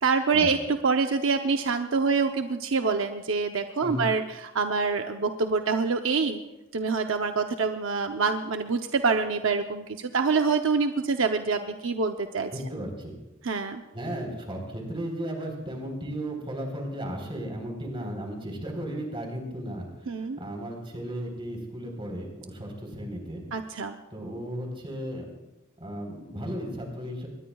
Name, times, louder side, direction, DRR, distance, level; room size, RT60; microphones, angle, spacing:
voice 1, 0.0-6.4 6.7-12.5 13.4-13.8 20.1-20.4 23.5-24.0, right 4 dB, 75° right, 6 dB, 0.7 m, -26 dB
voice 2, 12.5-13.2 13.9-19.9 20.4-23.4 24.1-25.3 25.8-27.3, equal, 25° right, 2 dB, 3.9 m, -35 dB
22.5 x 20.0 x 2.4 m, 0.99 s
head